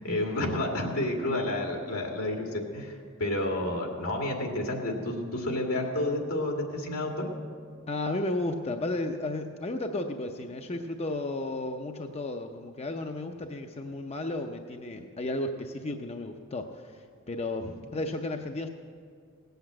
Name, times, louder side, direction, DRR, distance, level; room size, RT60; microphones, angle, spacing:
voice 1, 0.0-7.3, left 1 dB, 85° left, 1 dB, 2.2 m, -30 dB
voice 2, 7.9-18.7, left 2 dB, 30° left, 5 dB, 0.6 m, -33 dB
18.0 x 8.0 x 7.5 m, 2.1 s
head